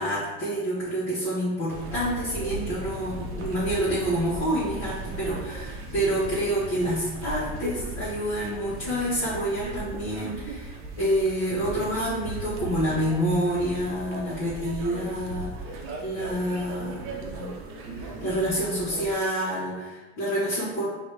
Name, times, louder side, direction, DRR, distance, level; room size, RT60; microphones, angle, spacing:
voice 1, 0.0-17.6 17.9-20.9, equal, 35° left, -10 dB, 1.5 m, -28 dB
sound 1, 1.7-19.1, right 2 dB, 40° right, 0.8 m, -37 dB
4.9 x 2.8 x 3.4 m, 1.2 s
supercardioid pair, 125°, 33 cm